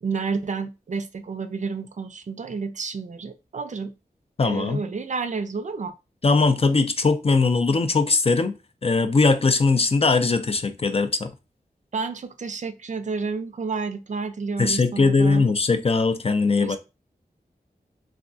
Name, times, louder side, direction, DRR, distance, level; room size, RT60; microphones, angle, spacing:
voice 1, 0.0-3.9 4.4-6.0 11.9-15.5 16.6-16.8, right 4 dB, 50° right, 0.4 m, -30 dB
voice 2, 4.4-4.8 6.2-8.5 8.8-11.3 14.6-16.8, left 4 dB, 35° left, 0.4 m, -20 dB
3.3 x 2.3 x 2.5 m
cardioid pair, 50°, 16 cm